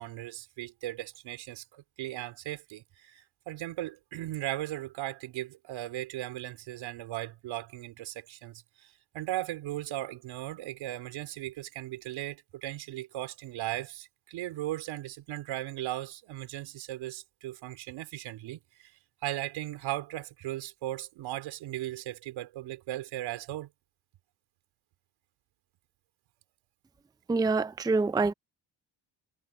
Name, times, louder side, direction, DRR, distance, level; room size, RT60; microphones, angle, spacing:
voice 1, 0.0-18.9 19.2-23.7, right 15 dB, 90° right, 4.4 m, -37 dB
voice 2, 27.3-28.3, right 3 dB, 10° right, 0.5 m, -26 dB
cardioid pair, 85°, 45 cm